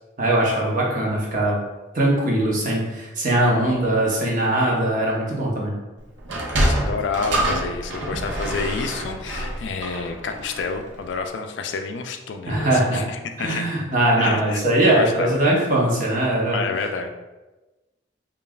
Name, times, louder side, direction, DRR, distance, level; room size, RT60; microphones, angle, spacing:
voice 1, 0.2-1.6 1.9-5.7 12.5-13.0 13.4-16.6, right 1 dB, 45° right, -4 dB, 0.9 m, -21 dB
Sliding door, 6.2-10.8, right 1 dB, 75° right, 0.7 m, -25 dB
voice 2, 6.6-13.6 14.2-14.6 14.9-15.4 16.5-17.1, left 5 dB, 70° left, 6 dB, 0.3 m, -29 dB
5.2 x 2.4 x 2.3 m, 1.1 s
head